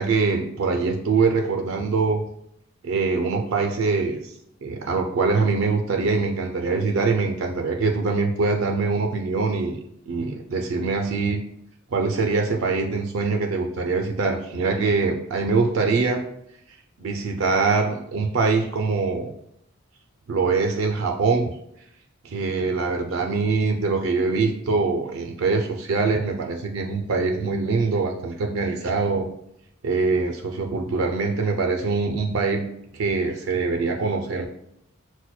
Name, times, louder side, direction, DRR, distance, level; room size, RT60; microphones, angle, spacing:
voice 1, 0.0-2.2 2.8-4.3 4.6-9.8 10.1-11.4 11.9-16.2 17.0-19.3 20.3-21.5 22.2-29.3 29.8-32.7 32.9-34.5, right 4 dB, 70° right, 3 dB, 0.4 m, -23 dB
5.9 x 2.1 x 2.2 m, 0.76 s
head